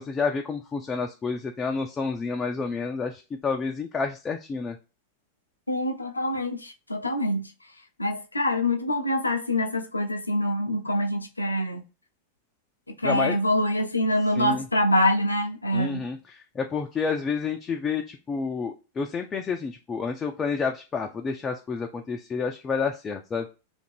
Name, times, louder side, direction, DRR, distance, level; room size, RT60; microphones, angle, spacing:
voice 1, 0.0-4.8 13.0-13.4 14.4-14.6 15.7-23.5, left 5 dB, 20° left, 0.4 m, -29 dB
voice 2, 5.7-7.5 8.0-11.8 12.9-16.1, left 1 dB, 80° left, 0.5 m, -25 dB
2.9 x 2.5 x 4.2 m
figure-of-eight pair, 90°, 0 cm